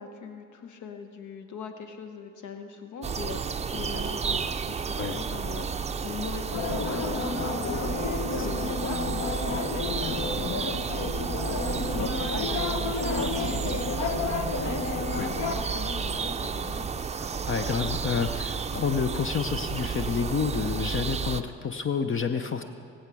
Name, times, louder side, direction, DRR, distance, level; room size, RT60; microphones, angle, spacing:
voice 1, 0.0-11.7 11.9-16.9, left 6 dB, 75° left, 6 dB, 1.0 m, -41 dB
sound 1, 3.0-21.4, right 6 dB, 20° right, 0.5 m, -32 dB
sound 2, 6.5-15.6, left 4 dB, 60° left, 1.2 m, -31 dB
voice 2, 17.2-22.6, left 6 dB, 40° left, 9 dB, 0.7 m, -29 dB
19.5 x 8.1 x 6.2 m, 2.3 s
cardioid pair, 90°, 30 cm